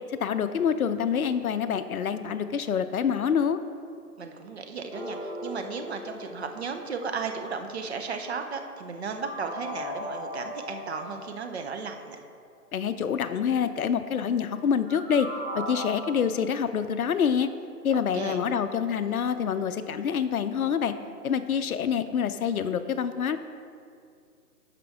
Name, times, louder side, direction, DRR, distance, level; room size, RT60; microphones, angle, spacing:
voice 1, 0.1-3.6 12.7-15.3 15.5-17.5 17.8-20.9 21.2-23.4, left 7 dB, 65° left, 10 dB, 0.6 m, -26 dB
voice 2, 4.2-12.2 17.9-18.4, right 5 dB, 45° right, 5 dB, 0.7 m, -35 dB
sound 1, 4.9-7.0 9.2-11.9 14.9-15.9, equal, 15° right, 1.6 m, -38 dB
12.5 x 5.2 x 3.6 m, 2.3 s
hypercardioid pair, 155°, 47 cm